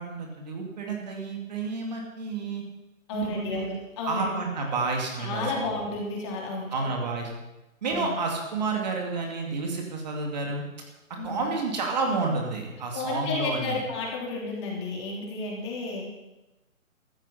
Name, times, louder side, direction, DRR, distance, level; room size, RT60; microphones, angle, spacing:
voice 1, 0.0-2.6 3.1-3.7 4.1-5.8 6.7-7.3 7.8-10.6 11.2-13.8, right 3 dB, 30° right, 1 dB, 2.3 m, -30 dB
voice 2, 3.1-4.3 5.2-6.7 7.8-8.1 11.2-11.5 12.9-16.2, left 3 dB, 20° left, -2 dB, 3.2 m, -32 dB
16.0 x 14.0 x 5.7 m, 1.0 s
hypercardioid pair, 170°, 41 cm